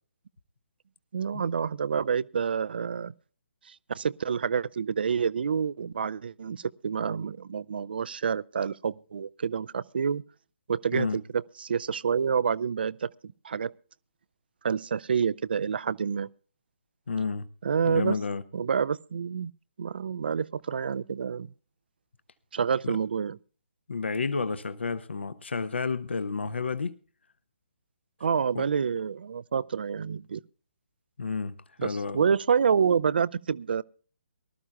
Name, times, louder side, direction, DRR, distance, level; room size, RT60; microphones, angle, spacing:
voice 1, 1.1-3.1 3.7-10.2 10.7-13.7 14.6-16.3 17.6-18.2 18.5-19.5 19.8-21.5 22.5-23.4 28.2-30.4 31.8-33.8, right 6 dB, 50° right, 0.5 m, -28 dB
voice 2, 17.1-17.5 17.8-18.4 22.8-23.0 23.9-27.0 28.5-28.7 31.2-32.2, left 4 dB, 65° left, 0.9 m, -31 dB
23.5 x 13.0 x 2.3 m
figure-of-eight pair, 135°, 7 cm